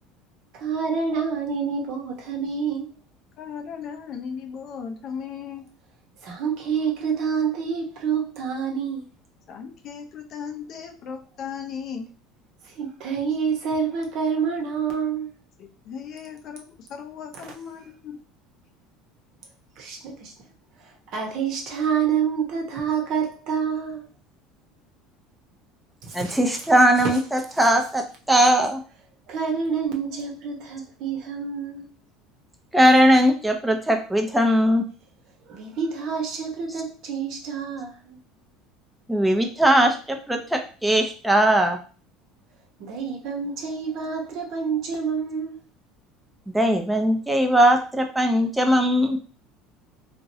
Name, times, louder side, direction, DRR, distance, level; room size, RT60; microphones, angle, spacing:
voice 1, 0.5-2.9 6.2-9.1 12.8-15.3 19.8-20.3 21.1-24.0 26.0-26.4 29.3-31.9 35.5-38.2 42.8-45.6, right 6 dB, 60° right, 0.9 m, -27 dB
voice 2, 3.4-5.6 9.5-12.1 15.6-18.2, left 7 dB, 55° left, 0.5 m, -36 dB
voice 3, 26.1-28.8 32.7-34.8 39.1-41.8 46.5-49.2, equal, 5° right, 0.6 m, -19 dB
3.0 x 2.5 x 2.7 m
supercardioid pair, 100°, 0 cm